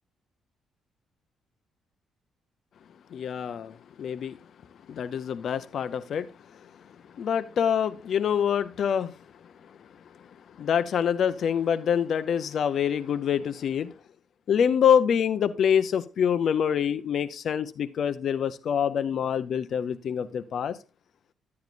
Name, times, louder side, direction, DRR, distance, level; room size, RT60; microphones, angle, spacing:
voice 1, 3.1-4.4 4.9-6.3 7.2-9.1 10.6-13.9 14.5-20.8, left 8 dB, 60° left, 0.5 m, -26 dB
10.5 x 9.4 x 2.4 m
cardioid pair, 90°, 0 cm